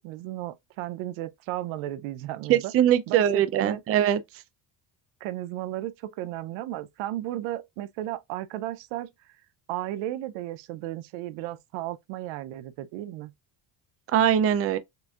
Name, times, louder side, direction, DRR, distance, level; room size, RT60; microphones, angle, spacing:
voice 1, 0.0-2.7 3.1-3.8 5.2-9.1 9.7-13.3, right 14 dB, 85° right, 0.7 m, -34 dB
voice 2, 2.5-4.2 14.1-14.8, right 10 dB, 30° right, 0.4 m, -22 dB
6.7 x 2.6 x 2.4 m
cardioid pair, 130°, 45 cm